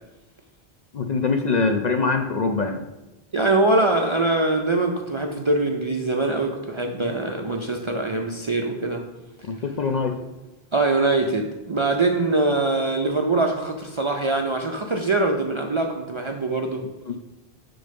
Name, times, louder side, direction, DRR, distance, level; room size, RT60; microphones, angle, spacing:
voice 1, 0.9-2.8 9.5-10.2 17.1-17.2, left 4 dB, 55° left, 5 dB, 0.5 m, -23 dB
voice 2, 3.3-9.1 10.7-16.9, right 2 dB, 40° right, 2 dB, 0.4 m, -23 dB
6.5 x 3.9 x 5.1 m, 1.0 s
omnidirectional pair, 1.0 m